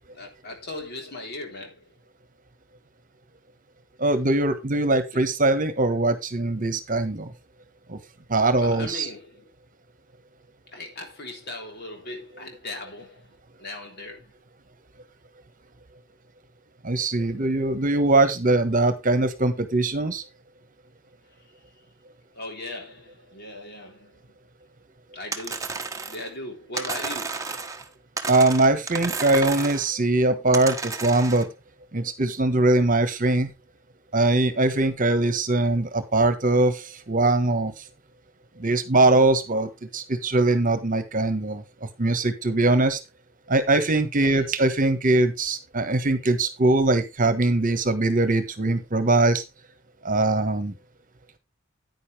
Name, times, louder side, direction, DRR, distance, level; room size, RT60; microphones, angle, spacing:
voice 1, 0.1-1.9 8.6-9.5 10.7-14.3 22.3-24.4 25.1-27.5 44.2-44.5, left 2 dB, 55° left, 3.7 m, -39 dB
voice 2, 4.0-7.3 7.9-8.0 8.3-9.1 16.8-20.2 28.3-31.5 31.9-33.5 34.1-37.7 38.6-41.6 42.0-43.0 43.5-49.4 50.0-50.7, right 2 dB, 40° right, 1.4 m, -22 dB
sound 1, 25.3-26.3 26.8-27.9 28.2-29.9 30.5-31.5, right 4 dB, 15° right, 1.2 m, -32 dB
9.9 x 9.7 x 3.4 m
head